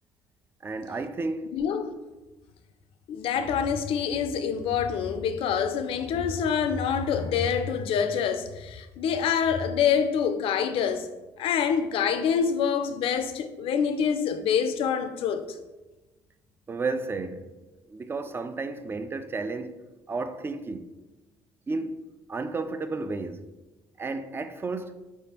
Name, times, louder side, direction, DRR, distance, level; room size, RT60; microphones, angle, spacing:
voice 1, 0.6-1.5 16.7-17.5 17.9-19.8 20.1-20.9 21.7-22.0 22.3-23.5 24.0-25.0, right 3 dB, 20° right, 0.3 m, -32 dB
voice 2, 1.5-1.9 3.1-11.1 11.4-15.4, left 7 dB, 65° left, 0.4 m, -26 dB
4.0 x 3.4 x 2.9 m
supercardioid pair, 70°, 10 cm